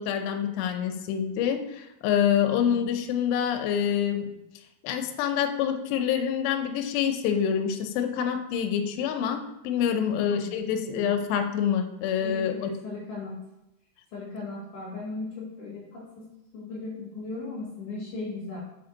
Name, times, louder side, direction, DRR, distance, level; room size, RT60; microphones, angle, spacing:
voice 1, 0.0-4.3 4.8-12.7, left 8 dB, 80° left, 4 dB, 2.7 m, -26 dB
voice 2, 2.4-3.0 10.0-11.3 12.2-13.3 14.1-18.6, left 3 dB, 60° left, -5 dB, 2.3 m, -38 dB
6.1 x 4.4 x 3.9 m, 0.89 s
omnidirectional pair, 5.0 m